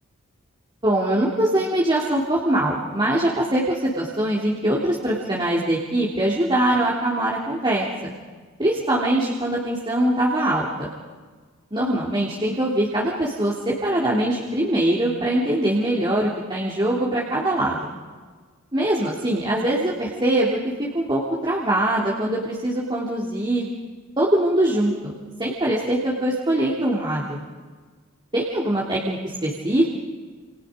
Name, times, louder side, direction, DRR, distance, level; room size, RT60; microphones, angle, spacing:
voice 1, 0.8-7.9 8.6-10.9 11.7-17.9 18.7-20.6 20.9-23.6 24.2-25.1 25.4-27.4 28.3-29.9, right 1 dB, 25° right, -4 dB, 3.2 m, -22 dB
29.5 x 29.0 x 5.2 m, 1.5 s
head